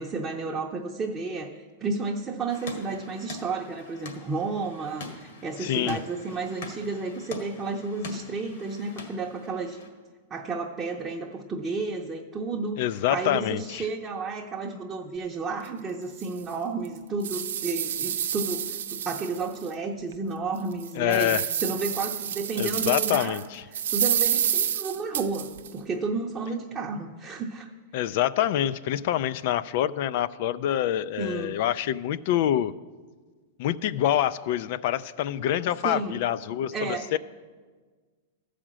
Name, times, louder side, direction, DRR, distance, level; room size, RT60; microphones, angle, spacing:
voice 1, 0.0-9.8 10.3-12.8 13.1-23.4 23.7-27.7 31.2-31.6 35.8-36.2 36.7-37.1, right 3 dB, 20° right, -1 dB, 0.7 m, -32 dB
sound 1, 2.5-9.9, left 3 dB, 70° left, 1.8 m, -43 dB
voice 2, 5.6-6.0 12.8-13.9 21.0-21.4 22.6-23.6 27.9-32.7 33.6-36.7 37.1-37.2, left 12 dB, 50° left, 16 dB, 0.3 m, -26 dB
sound 2, 15.6-15.7 16.2-16.3 16.8-19.7 20.1-20.2 20.7-23.4 23.7-25.7, right 9 dB, 85° right, 0.6 m, -28 dB
14.0 x 5.0 x 7.4 m, 1.5 s
supercardioid pair, 150°, 0 cm